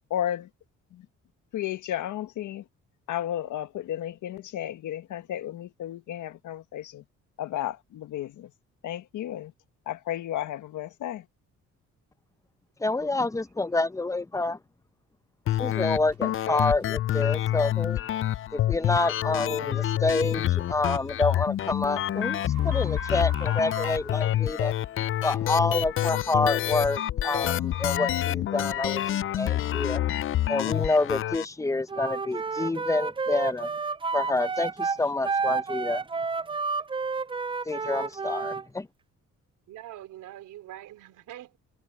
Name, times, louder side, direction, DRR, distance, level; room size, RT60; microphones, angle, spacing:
voice 1, 0.1-0.5 0.9-1.1 1.5-2.7 3.1-7.0 7.4-8.5 8.8-9.5 9.9-11.3, left 12 dB, 80° left, 1.6 m, -33 dB
voice 2, 12.8-14.6 15.6-18.0 18.5-24.7 25.2-30.0 30.5-33.7 34.1-36.0 37.6-38.9, left 2 dB, 10° left, 0.8 m, -28 dB
sound 1, 15.5-31.5, left 12 dB, 45° left, 0.4 m, -27 dB
sound 2, 16.1-16.2 16.8-17.0 17.6-17.8 20.4-24.9, right 13 dB, 70° right, 5.1 m, -45 dB
Wind instrument woodwind instrument, 31.9-38.6, right 4 dB, 15° right, 0.4 m, -30 dB
voice 3, 39.7-41.6, right 13 dB, 85° right, 3.5 m, -44 dB
cardioid pair, 90°, 30 cm